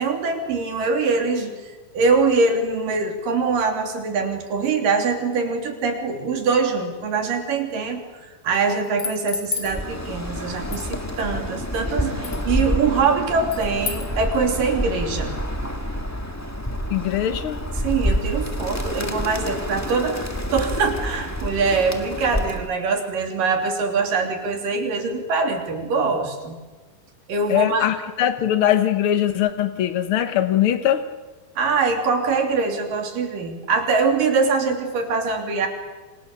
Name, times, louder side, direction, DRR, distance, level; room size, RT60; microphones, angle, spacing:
voice 1, 0.0-15.4 17.2-17.3 17.7-26.6 27.3-27.9 31.6-35.7, right 4 dB, 75° right, 4 dB, 4.7 m, -23 dB
sound 1, 8.8-9.7 10.7-10.9 12.2-12.4 13.5-14.1, left 5 dB, 50° left, 3.6 m, -30 dB
Bird, 9.6-22.7, equal, 10° left, 1.0 m, -28 dB
voice 2, 16.9-17.6 27.5-31.0, left 11 dB, 75° left, 9 dB, 1.2 m, -21 dB
28.5 x 26.0 x 6.8 m, 1.3 s
omnidirectional pair, 3.9 m